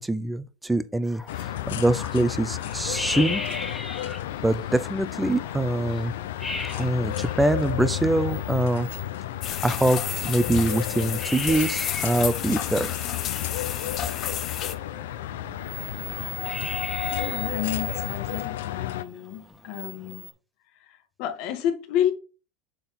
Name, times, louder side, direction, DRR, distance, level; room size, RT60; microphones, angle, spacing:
voice 1, 0.0-3.4 4.0-6.1 6.8-8.9 9.6-13.0, right 1 dB, 5° right, 0.6 m, -24 dB
sound 1, 1.0-20.3, left 3 dB, 15° left, 1.5 m, -38 dB
sound 2, 1.3-19.0, left 13 dB, 85° left, 0.5 m, -32 dB
sound 3, 9.4-14.8, left 10 dB, 45° left, 0.8 m, -31 dB
voice 2, 17.1-20.3 20.8-22.1, left 10 dB, 60° left, 1.2 m, -30 dB
6.8 x 3.8 x 4.2 m
supercardioid pair, 110°, 0 cm